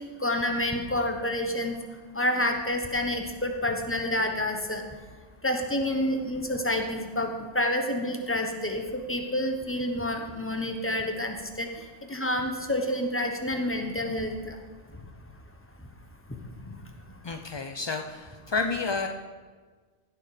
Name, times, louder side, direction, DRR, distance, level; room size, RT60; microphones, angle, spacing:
voice 1, 0.2-1.8 2.2-4.8 5.4-7.3 7.5-11.7 12.1-14.5, left 1 dB, 10° left, 4 dB, 1.0 m, -28 dB
voice 2, 17.2-19.1, left 4 dB, 45° left, 5 dB, 0.3 m, -30 dB
15.5 x 6.9 x 5.0 m, 1.5 s
omnidirectional pair, 1.1 m